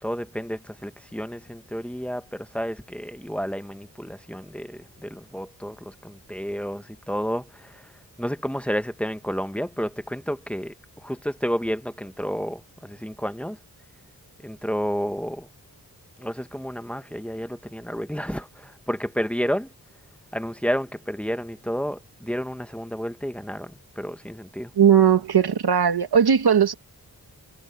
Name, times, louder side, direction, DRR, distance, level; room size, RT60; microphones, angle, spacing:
voice 1, 0.0-7.9 8.2-13.6 14.4-15.5 16.2-19.7 20.3-24.7, equal, 5° left, 1.1 m, -31 dB
voice 2, 24.8-26.7, right 8 dB, 85° right, 1.7 m, -18 dB
wide cardioid pair, 125°, 37 cm